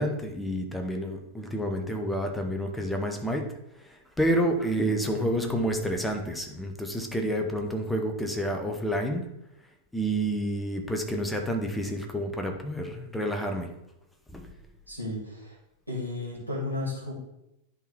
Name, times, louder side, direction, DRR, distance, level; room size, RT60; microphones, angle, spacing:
voice 1, 0.0-3.5 4.2-9.3 9.9-13.7 14.3-14.5, right 1 dB, 5° left, 4 dB, 1.1 m, -29 dB
voice 2, 14.9-15.6 15.9-17.1, left 2 dB, 85° right, -4 dB, 2.5 m, -33 dB
10.5 x 4.1 x 4.4 m, 0.86 s
figure-of-eight pair, 90°, 0 cm